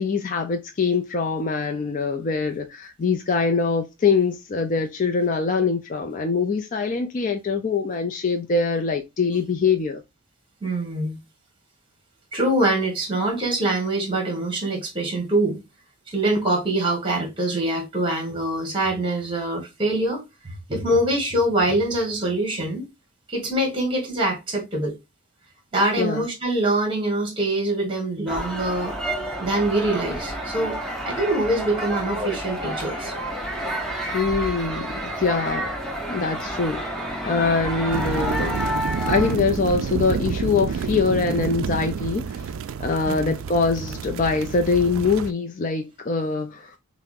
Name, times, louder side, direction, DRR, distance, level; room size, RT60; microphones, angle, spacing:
voice 1, 0.0-10.0 26.0-26.3 34.1-35.7 36.1-36.8 37.2-38.6 39.1-42.5 42.8-46.8, left 4 dB, 35° left, 0.3 m, -23 dB
voice 2, 10.6-11.2 12.3-15.6 16.1-22.9 23.3-24.9 25.7-28.9 29.4-30.8 31.0-33.1 43.1-43.3, right 1 dB, 25° right, 1.5 m, -24 dB
sound 1, 28.3-39.3, equal, ahead, 0.7 m, -30 dB
sound 2, 37.9-45.3, right 6 dB, 70° right, 0.3 m, -29 dB
5.7 x 2.0 x 2.5 m
head